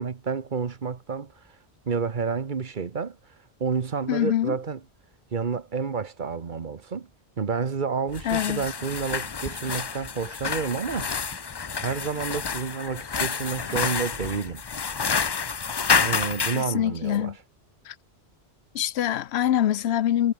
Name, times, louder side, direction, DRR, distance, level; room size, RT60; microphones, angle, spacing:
voice 1, 0.0-1.3 1.9-3.2 3.6-4.8 5.3-7.1 7.4-11.1 11.8-14.6 16.0-17.3, right 5 dB, 50° right, 1.2 m, -29 dB
voice 2, 4.1-4.6 8.2-8.6 16.5-17.4 17.9-18.0 18.7-20.3, left 11 dB, 80° left, 0.9 m, -24 dB
sound 1, 8.1-16.7, left 5 dB, 35° left, 0.4 m, -28 dB
sound 2, 9.0-16.0, left 1 dB, 15° left, 3.7 m, -53 dB
omnidirectional pair, 1.1 m